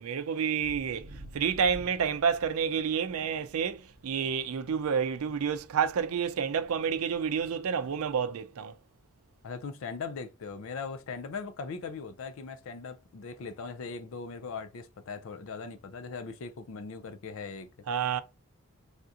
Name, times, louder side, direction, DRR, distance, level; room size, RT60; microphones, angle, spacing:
voice 1, 0.0-8.8 17.9-18.2, right 7 dB, 75° right, 0.4 m, -29 dB
sound 1, 0.6-8.2, right 1 dB, 55° right, 0.8 m, -52 dB
voice 2, 9.4-17.7, left 4 dB, 65° left, 0.4 m, -39 dB
3.4 x 2.4 x 2.7 m
head